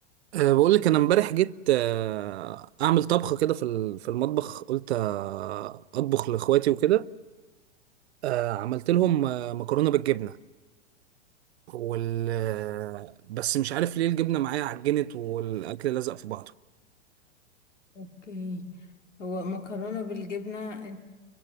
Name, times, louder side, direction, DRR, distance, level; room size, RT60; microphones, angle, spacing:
voice 1, 0.3-7.1 8.2-10.4 11.7-16.5, right 14 dB, 65° right, 0.6 m, -26 dB
voice 2, 17.9-18.8 19.2-21.0, left 3 dB, 85° left, 2.5 m, -35 dB
24.0 x 23.5 x 7.3 m
hypercardioid pair, 105°, 35 cm